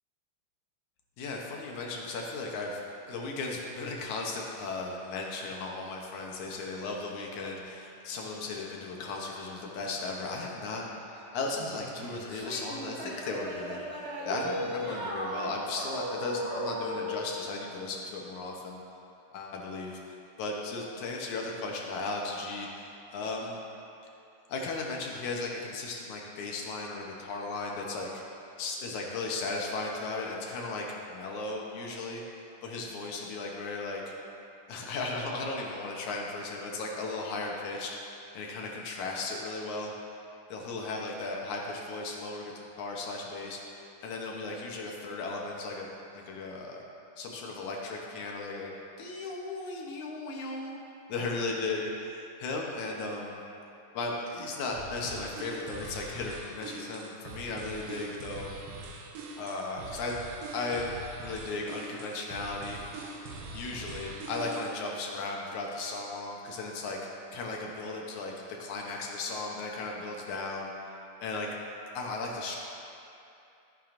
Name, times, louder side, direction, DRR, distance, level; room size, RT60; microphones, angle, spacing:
voice 1, 1.2-2.8 3.1-13.9 14.2-18.8 19.3-20.0 20.4-23.6 24.5-28.2 28.6-32.2 32.6-34.1 34.7-38.0 38.3-39.9 40.5-45.9 46.1-46.8 47.2-48.7 49.0-50.8 51.1-53.4 53.9-58.5 59.4-60.2 60.5-62.8 63.5-67.0 67.3-68.3 68.6-70.9 71.2-71.5 71.9-72.6, left 3 dB, 70° left, -1 dB, 2.2 m, -36 dB
sound 1, 11.5-17.2, equal, 45° right, 1.3 m, -37 dB
sound 2, 54.7-64.8, right 2 dB, 85° right, 2.6 m, -43 dB
13.5 x 8.9 x 2.5 m, 2.7 s
omnidirectional pair, 3.7 m